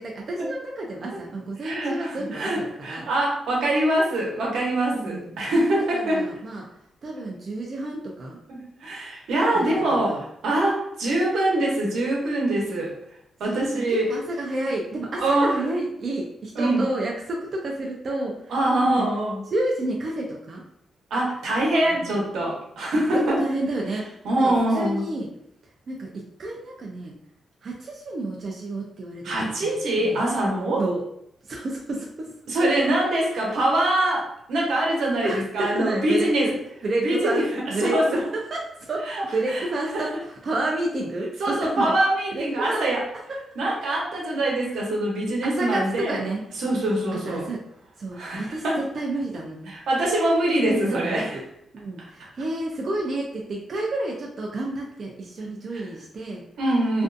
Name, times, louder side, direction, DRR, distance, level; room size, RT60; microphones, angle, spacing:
voice 1, 0.0-3.1 4.9-5.4 5.9-6.7 7.0-8.4 9.5-10.2 13.4-18.6 18.8-19.1 19.5-20.6 21.9-22.2 23.1-24.1 24.4-25.3 25.6-27.1 27.6-29.3 29.6-30.2 30.8-31.0 31.4-32.4 33.3-33.6 35.2-36.5 36.8-42.0 42.3-42.9 43.3-43.4 45.4-46.4 47.1-47.6 48.0-49.7 50.7-51.4 51.7-56.4 56.9-57.0, right 2 dB, 40° right, -1 dB, 0.4 m, -30 dB
voice 2, 1.6-6.2 8.5-12.9 13.4-14.1 15.2-15.5 16.6-16.8 18.5-19.4 21.1-23.4 24.2-25.0 29.2-30.8 32.5-36.5 37.0-37.4 37.8-38.0 39.1-39.2 39.5-39.6 39.9-40.0 41.4-43.0 43.6-46.2 46.6-47.4 48.1-48.8 49.9-51.4 56.6-57.0, right 1 dB, 85° right, -2 dB, 0.8 m, -24 dB
2.5 x 2.3 x 2.5 m, 0.74 s
wide cardioid pair, 155°, 0 cm